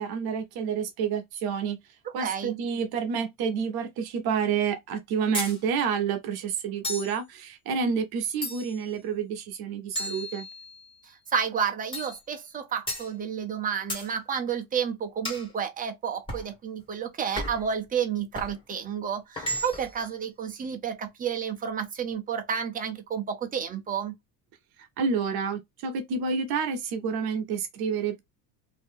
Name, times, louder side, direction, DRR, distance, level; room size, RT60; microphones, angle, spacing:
voice 1, 0.0-1.8 2.1-10.4 25.0-28.2, right 6 dB, 55° right, 0.8 m, -29 dB
voice 2, 2.2-2.6 11.0-24.1, right 7 dB, 20° right, 0.6 m, -31 dB
sound 1, 5.3-5.6 6.8-7.2 8.4-8.9 10.0-10.9 11.9-12.2 12.9-13.1 13.9-14.1 15.2-15.5 16.3-16.5 17.4-17.7 18.3-18.6 19.4-20.0, equal, 10° left, 1.6 m, -34 dB
2.8 x 2.7 x 3.5 m
cardioid pair, 155°, 45 cm